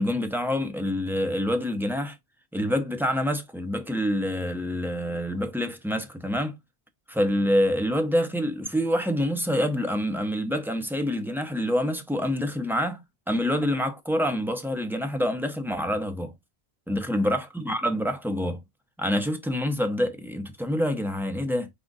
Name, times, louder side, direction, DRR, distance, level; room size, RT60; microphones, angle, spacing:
voice 1, 0.0-2.2 2.5-6.6 7.1-13.0 13.3-16.3 16.9-18.6 19.0-21.7, equal, 5° right, 0.5 m, -26 dB
4.9 x 2.4 x 3.9 m
omnidirectional pair, 1.1 m